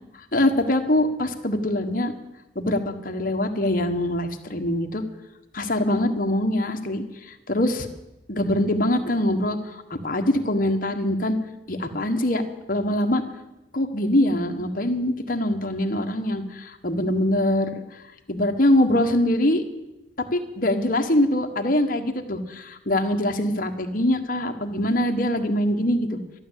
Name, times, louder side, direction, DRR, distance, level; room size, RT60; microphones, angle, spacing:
voice 1, 0.3-2.1 2.5-5.0 5.5-7.9 8.3-11.4 11.7-12.4 12.7-13.2 13.7-17.8 18.3-19.6 20.3-26.2, left 1 dB, 45° left, 5 dB, 1.5 m, -23 dB
12.5 x 12.0 x 8.2 m, 0.97 s
head